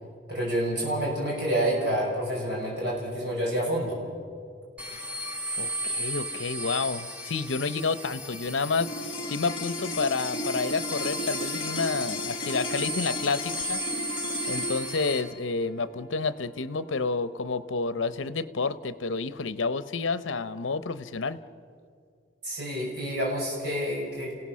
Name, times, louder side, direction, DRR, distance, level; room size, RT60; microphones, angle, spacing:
voice 1, 0.3-4.0 22.4-24.3, right 1 dB, 55° right, -4 dB, 6.4 m, -28 dB
sound 1, 4.8-15.2, equal, 5° right, 1.2 m, -35 dB
voice 2, 5.6-13.8 14.5-21.4, left 4 dB, 75° left, 14 dB, 0.8 m, -30 dB
sound 2, 8.8-19.2, left 2 dB, 25° left, 1.4 m, -36 dB
30.0 x 17.0 x 6.3 m, 2.3 s
head